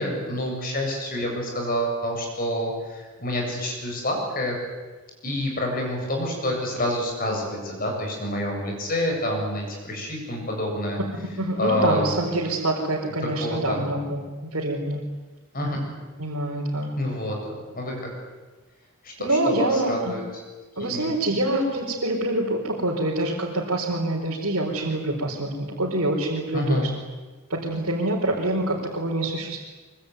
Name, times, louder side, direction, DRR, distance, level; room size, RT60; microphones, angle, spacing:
voice 1, 0.0-4.6 5.2-11.0 11.6-12.1 13.2-13.8 15.5-15.8 17.0-18.1 19.0-20.2 20.8-21.1 26.5-26.9, left 1 dB, 40° left, 1 dB, 7.7 m, -28 dB
voice 2, 11.4-15.0 16.2-16.9 19.2-20.1 20.8-26.9 27.5-29.6, right 1 dB, 70° right, -4 dB, 4.4 m, -26 dB
24.0 x 24.0 x 9.5 m, 1.3 s
head